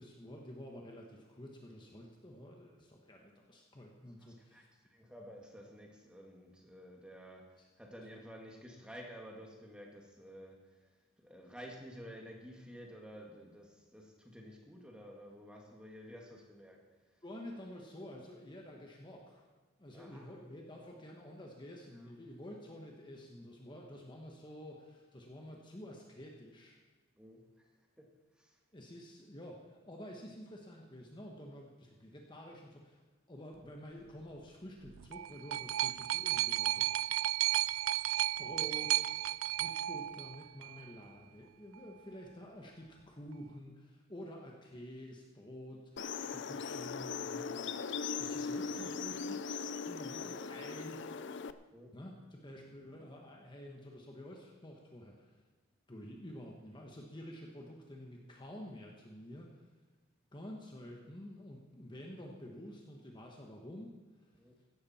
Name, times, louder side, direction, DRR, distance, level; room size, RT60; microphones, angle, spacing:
voice 1, 0.0-4.7 8.0-8.1 17.2-19.5 19.8-26.8 28.7-33.0 33.3-37.1 38.4-39.2 39.6-47.9 48.2-51.0 51.9-55.4 55.9-59.6 60.3-63.9, equal, 25° left, 0 dB, 1.4 m, -50 dB
voice 2, 4.2-10.7 11.2-16.8 19.9-20.4 21.9-22.2 27.2-27.4 28.0-28.1 28.4-28.6 51.7-51.9 64.3-64.6, equal, 5° right, 0 dB, 2.0 m, -52 dB
sound 1, 34.8-40.8 41.7-41.8, right 14 dB, 90° right, 0.4 m, -33 dB
sound 2, 46.0-51.5, left 5 dB, 60° left, 0.5 m, -39 dB
16.5 x 13.0 x 4.4 m, 1.3 s
head